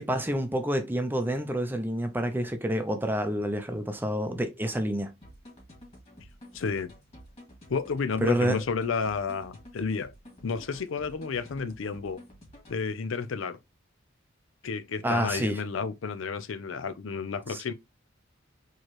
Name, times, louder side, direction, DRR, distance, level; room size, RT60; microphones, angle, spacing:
voice 1, 0.0-5.1 8.2-8.6 15.0-15.6 17.5-17.6, right 1 dB, 10° right, 0.6 m, -28 dB
sound 1, 5.2-12.9, equal, 30° left, 2.2 m, -51 dB
voice 2, 6.5-6.9 7.7-10.1 10.4-12.2 12.7-13.6 14.6-17.7, left 5 dB, 80° left, 0.5 m, -31 dB
4.5 x 3.1 x 2.9 m
head